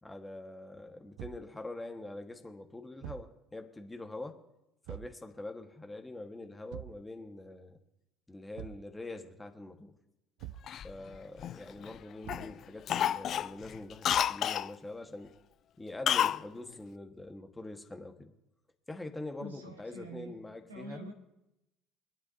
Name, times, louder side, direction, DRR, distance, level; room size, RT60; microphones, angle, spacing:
voice 1, 0.0-4.4 4.9-7.8 8.3-9.9 10.8-15.3 15.8-18.3 18.9-21.0, left 2 dB, 15° left, 4 dB, 1.5 m, -44 dB
Thump thud, 1.2-1.5 3.0-3.4 4.9-5.2 6.7-7.1 8.5-8.9 10.4-10.7 12.2-12.6 14.1-14.4, right 16 dB, 70° right, 0.3 m, -45 dB
Cough, 10.7-11.9 12.3-12.5 12.9-14.7 16.1-16.4 16.7-16.8, left 10 dB, 50° left, 0.3 m, -30 dB
voice 2, 19.4-20.4 20.7-21.1, right 1 dB, 90° right, 3 dB, 1.8 m, -45 dB
25.0 x 9.7 x 2.7 m, 0.90 s
hypercardioid pair, 60°, 0 cm